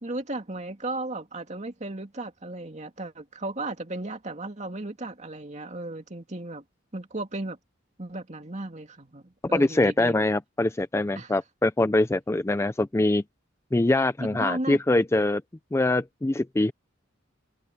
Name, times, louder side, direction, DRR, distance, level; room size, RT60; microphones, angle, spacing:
voice 1, 0.0-6.6 6.9-7.6 8.0-10.2 11.2-11.3 14.2-14.8, right 2 dB, 35° right, 2.4 m, -35 dB
voice 2, 9.5-13.2 13.7-15.4 15.7-16.7, left 2 dB, 15° left, 0.4 m, -23 dB
head